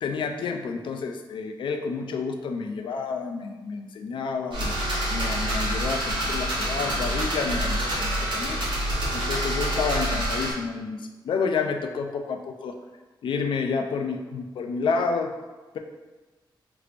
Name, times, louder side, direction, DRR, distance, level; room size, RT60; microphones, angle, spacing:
voice 1, 0.0-4.7 5.1-8.6 9.1-12.8 13.2-15.4, left 5 dB, 85° left, 4 dB, 0.3 m, -29 dB
sound 1, 4.5-10.5, right 1 dB, 75° right, 1.0 m, -27 dB
3.2 x 2.4 x 3.2 m, 1.2 s
wide cardioid pair, 135°, 8 cm